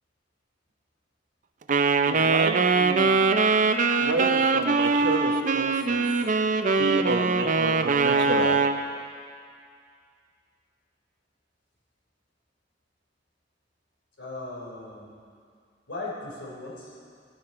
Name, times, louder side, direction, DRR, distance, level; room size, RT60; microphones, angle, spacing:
Wind instrument woodwind instrument, 1.7-8.8, right 4 dB, 45° right, 0.5 m, -22 dB
voice 1, 2.1-3.4 4.0-6.1 6.7-8.6, right 3 dB, 65° right, 3 dB, 1.0 m, -30 dB
voice 2, 14.2-15.1 15.9-17.0, left 2 dB, 70° left, -5 dB, 3.4 m, -37 dB
16.0 x 10.0 x 4.3 m, 2.2 s
head